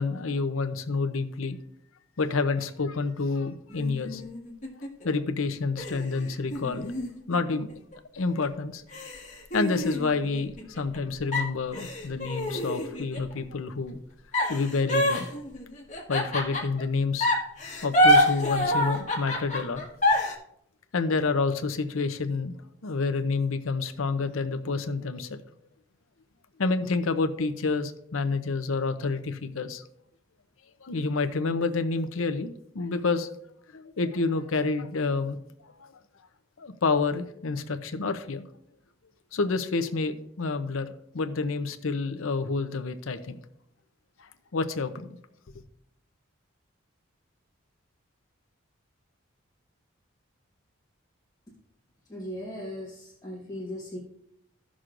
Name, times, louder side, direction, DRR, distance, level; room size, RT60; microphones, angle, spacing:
voice 1, 0.0-1.6 2.2-4.2 4.8-6.9 7.3-7.7 8.1-8.8 9.5-14.0 14.5-15.3 16.1-17.3 17.8-19.8 20.9-22.6 22.8-25.4 26.6-29.8 30.8-33.3 33.7-35.4 35.6-36.0 36.6-38.5 39.3-40.9 41.1-43.4 44.2-45.1, left 4 dB, 75° left, 0.7 m, -28 dB
sound 1, 3.7-5.1 5.8-8.0 8.4-8.5 8.9-11.0 11.3-13.3 14.3-16.8 17.2-20.3, equal, 35° left, 1.5 m, -27 dB
voice 2, 52.1-54.0, left 1 dB, 15° left, 1.4 m, -38 dB
15.5 x 6.2 x 2.5 m
head